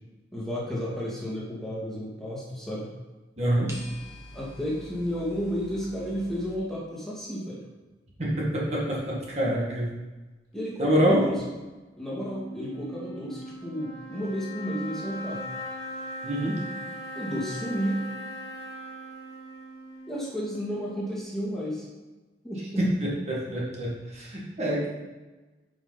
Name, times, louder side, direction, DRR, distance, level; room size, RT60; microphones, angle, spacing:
voice 1, 0.3-2.9 4.3-7.7 10.5-11.4 12.0-15.4 17.1-18.1 20.1-21.9 22.4-22.8, equal, 5° left, -6 dB, 2.0 m, -32 dB
voice 2, 3.4-3.7 8.2-9.9 10.8-11.2 16.2-16.6 22.8-24.9, equal, 40° right, -5 dB, 1.6 m, -26 dB
sound 1, 3.7-6.6, equal, 15° right, 1.3 m, -45 dB
sound 2, 11.9-21.3, equal, 35° left, 2.0 m, -40 dB
9.7 x 5.3 x 3.9 m, 1.2 s
head